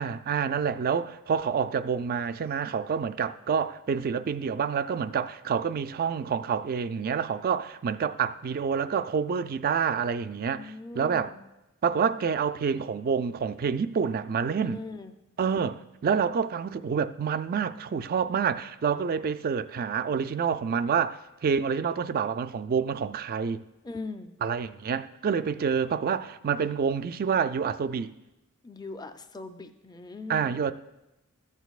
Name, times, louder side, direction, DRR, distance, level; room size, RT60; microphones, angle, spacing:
voice 1, 0.0-11.3 11.8-14.8 15.4-23.6 24.4-28.1 30.3-30.7, right 6 dB, 40° right, 0.3 m, -28 dB
voice 2, 10.4-11.4 14.6-15.1 23.8-24.3 28.6-30.5, left 3 dB, 20° left, 0.5 m, -40 dB
14.5 x 8.1 x 2.4 m
head